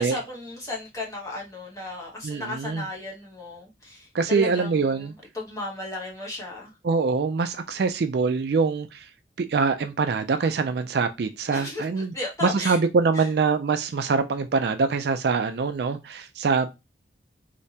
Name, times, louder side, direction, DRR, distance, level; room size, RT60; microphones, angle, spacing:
voice 1, 0.0-6.7 11.5-12.8 13.1-13.3 15.9-16.0, left 2 dB, 15° left, 0.9 m, -35 dB
voice 2, 2.2-2.9 4.1-5.1 6.8-9.1 9.4-12.1 12.4-16.7, right 4 dB, 60° right, 0.4 m, -24 dB
3.3 x 2.8 x 2.7 m
head